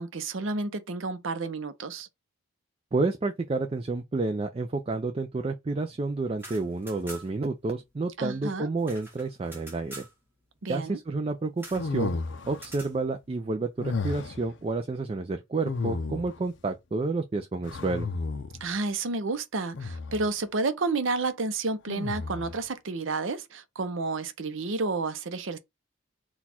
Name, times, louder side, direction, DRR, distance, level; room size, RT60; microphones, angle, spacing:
voice 1, 0.0-2.1 8.2-8.7 10.6-11.0 18.6-25.6, right 3 dB, 65° right, 0.6 m, -30 dB
voice 2, 2.9-10.0 10.7-12.2 12.5-18.1, right 3 dB, 25° right, 0.3 m, -30 dB
sound 1, 6.3-7.5 7.8-7.9 8.1-10.1 11.6-11.9 12.5-13.0, right 2 dB, 10° right, 1.2 m, -45 dB
sound 2, 11.7-12.7 13.8-14.5 15.6-16.5 17.6-18.7 19.7-20.3 21.9-22.6, left 4 dB, 60° left, 0.5 m, -33 dB
4.1 x 2.3 x 4.2 m
head